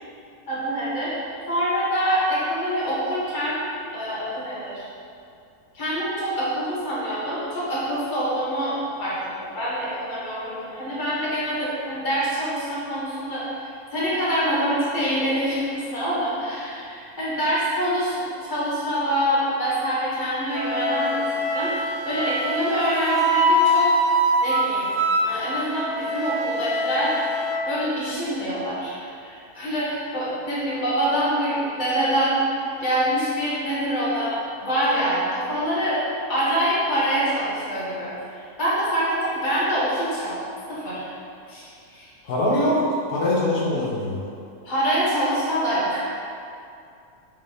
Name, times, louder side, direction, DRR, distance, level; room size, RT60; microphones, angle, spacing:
voice 1, 0.5-3.6 3.9-4.8 5.7-8.7 9.0-18.1 18.4-23.9 24.4-24.9 25.2-27.1 27.7-36.0 36.3-40.3 40.7-41.1 41.5-42.1 44.6-46.1, equal, 30° left, -9 dB, 1.6 m, -25 dB
Wind instrument woodwind instrument, 20.5-27.6, equal, 85° right, 1.4 m, -23 dB
voice 2, 42.2-44.2, left 1 dB, 80° left, -6 dB, 1.6 m, -22 dB
6.7 x 3.7 x 4.0 m, 2.5 s
omnidirectional pair, 1.7 m